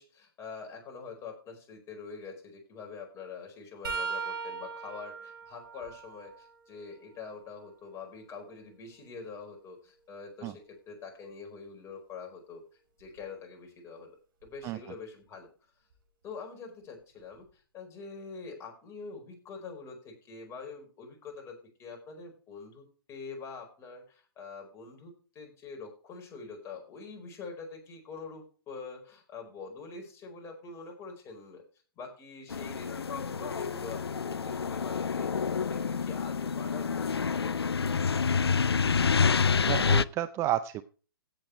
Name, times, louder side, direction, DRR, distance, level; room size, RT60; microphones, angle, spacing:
voice 1, 0.0-12.6 13.0-14.1 14.4-15.5 16.2-31.6 32.0-38.6, left 4 dB, 20° left, 2 dB, 4.7 m, -45 dB
sound 1, 3.8-7.6 8.1-10.1 13.0-13.2 14.4-14.6 15.9-16.0, right 5 dB, 60° right, 4.1 m, -41 dB
sound 2, 32.5-40.0, left 5 dB, 85° left, 0.5 m, -28 dB
voice 2, 39.7-40.8, right 14 dB, 20° right, 13 dB, 0.5 m, -31 dB
16.5 x 7.6 x 3.3 m, 0.38 s
figure-of-eight pair, 130°, 13 cm